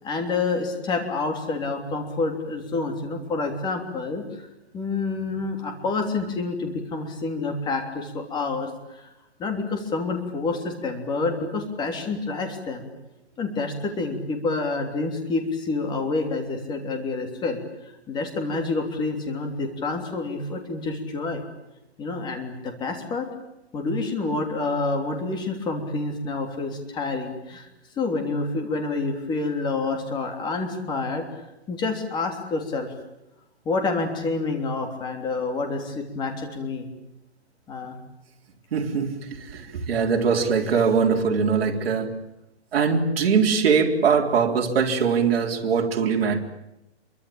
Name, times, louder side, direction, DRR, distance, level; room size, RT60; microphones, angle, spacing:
voice 1, 0.0-4.5 4.7-9.1 9.4-12.9 13.4-17.6 18.1-21.4 22.0-23.3 23.7-27.7 28.0-31.4 31.7-32.9 33.6-36.9 37.7-38.0, left 3 dB, 10° left, 4 dB, 3.2 m, -28 dB
voice 2, 38.7-42.3 42.7-46.4, right 6 dB, 55° right, 1 dB, 3.8 m, -22 dB
27.0 x 24.0 x 8.8 m, 0.92 s
hypercardioid pair, 165°, 35 cm